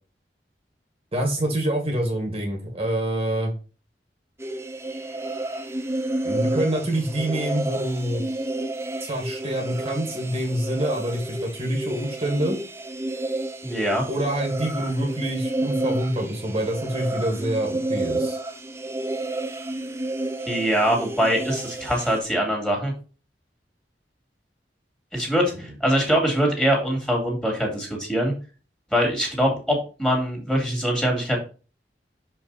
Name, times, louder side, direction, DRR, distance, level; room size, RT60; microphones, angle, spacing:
voice 1, 1.1-3.5 6.2-8.2 9.0-12.6 14.1-18.4, right 1 dB, 35° right, 1 dB, 1.7 m, -26 dB
sound 1, 4.4-22.2, right 2 dB, 15° right, 0.7 m, -30 dB
voice 2, 13.6-14.0 20.5-22.9 25.1-28.3 28.9-31.4, equal, 5° left, 0 dB, 2.6 m, -23 dB
6.3 x 5.3 x 4.1 m, 0.34 s
head